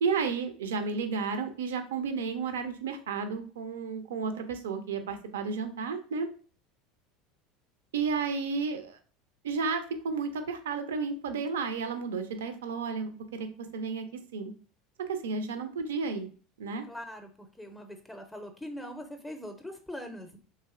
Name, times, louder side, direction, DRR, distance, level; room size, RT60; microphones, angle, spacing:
voice 1, 0.0-6.3 7.9-9.0 9.4-13.5 13.7-14.1 14.3-14.5 15.1-16.3 16.6-16.8, right 5 dB, 80° right, 8 dB, 0.4 m, -32 dB
voice 2, 16.9-20.4, equal, 10° left, 6 dB, 0.5 m, -42 dB
3.1 x 2.6 x 2.4 m, 0.41 s
hypercardioid pair, 80°, 0 cm